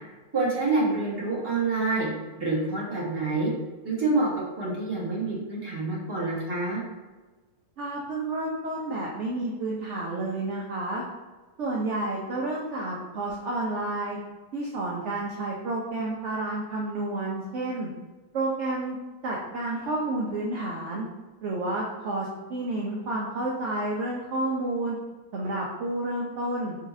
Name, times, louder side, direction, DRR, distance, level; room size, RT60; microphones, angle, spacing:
voice 1, 0.3-2.1 2.4-3.5 3.8-6.8, right 3 dB, 15° right, -6 dB, 1.0 m, -27 dB
voice 2, 7.8-11.0 11.6-14.2 14.5-17.9 18.3-19.0 19.2-21.1 21.4-25.0 25.3-26.8, right 2 dB, 65° right, -4 dB, 0.7 m, -30 dB
4.0 x 3.6 x 2.6 m, 1.2 s
omnidirectional pair, 1.9 m